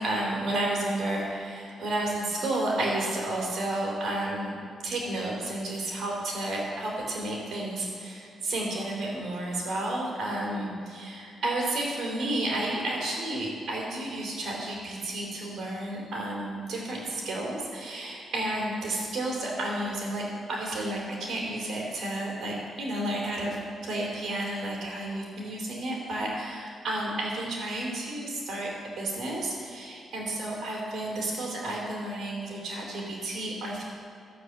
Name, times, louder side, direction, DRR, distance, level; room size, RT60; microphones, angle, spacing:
voice 1, 0.0-4.5 4.8-23.6 23.8-33.8, right 1 dB, 70° right, -2 dB, 2.9 m, -31 dB
12.5 x 6.9 x 7.7 m, 2.6 s
cardioid pair, 130°, 0 cm